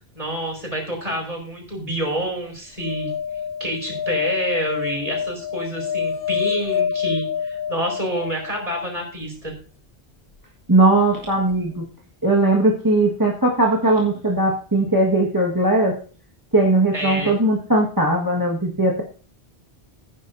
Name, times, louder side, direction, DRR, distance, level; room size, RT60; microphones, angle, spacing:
voice 1, 0.1-3.1 3.6-9.5 16.9-17.3, right 1 dB, 35° right, 1 dB, 4.9 m, -28 dB
sound 1, 2.8-9.0 11.3-11.4 11.5-11.6, left 7 dB, 65° left, 0.9 m, -27 dB
voice 2, 10.7-11.8 12.2-16.0 16.5-19.0, right 2 dB, 20° right, -2 dB, 1.6 m, -19 dB
16.5 x 10.0 x 2.7 m, 0.39 s
omnidirectional pair, 1.1 m